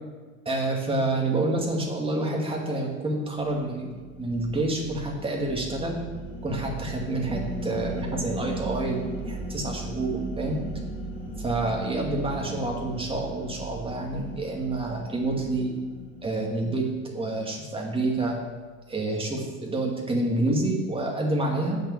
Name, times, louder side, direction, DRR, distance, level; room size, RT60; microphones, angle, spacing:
voice 1, 0.5-3.9 4.2-6.0 6.4-10.6 11.4-15.7 16.2-18.4 18.9-21.8, right 2 dB, 15° right, -1 dB, 2.3 m, -28 dB
sound 1, 3.7-16.9, right 2 dB, 20° left, 2.7 m, -37 dB
7.7 x 6.6 x 7.2 m, 1.4 s
hypercardioid pair, 100°, 41 cm